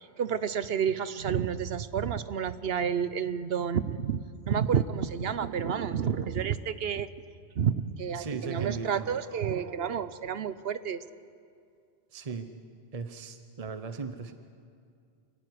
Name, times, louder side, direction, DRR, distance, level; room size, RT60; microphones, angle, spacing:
voice 1, 0.2-7.1 7.6-11.0, right 7 dB, 65° right, 14 dB, 1.0 m, -30 dB
voice 2, 8.1-9.1 12.1-12.5 12.9-14.3, right 5 dB, 35° right, 8 dB, 1.0 m, -37 dB
27.5 x 15.5 x 9.8 m, 2.3 s
omnidirectional pair, 1.1 m